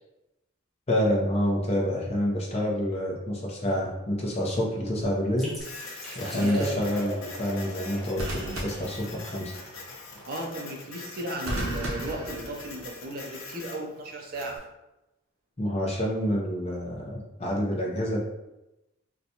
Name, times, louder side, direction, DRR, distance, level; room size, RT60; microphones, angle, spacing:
voice 1, 0.9-5.5 6.1-9.5 15.6-18.2, equal, 30° left, -2 dB, 0.6 m, -28 dB
sound 1, 4.3-4.6 8.2-9.6 11.5-13.1 14.3-14.6, right 1 dB, 80° right, 0.7 m, -35 dB
sound 2, 5.4-10.9, equal, ahead, 0.9 m, -42 dB
Printer, 5.6-14.6, left 3 dB, 70° left, 0.8 m, -43 dB
voice 2, 6.3-6.8 10.3-14.6, right 1 dB, 45° right, 1 dB, 0.5 m, -35 dB
4.0 x 2.2 x 2.8 m, 0.95 s
head